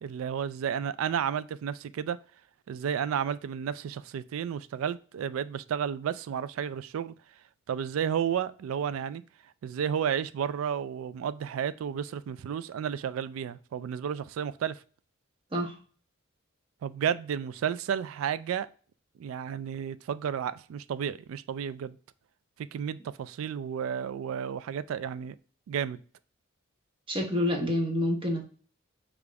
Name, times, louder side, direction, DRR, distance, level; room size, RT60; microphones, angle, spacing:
voice 1, 0.0-2.2 2.7-7.1 7.7-9.2 9.6-14.8 16.8-18.7 19.2-22.0 22.7-25.3 25.7-26.0, right 8 dB, 85° right, 0.3 m, -32 dB
voice 2, 27.1-28.4, left 1 dB, 25° right, 0.9 m, -28 dB
5.1 x 2.4 x 3.3 m
head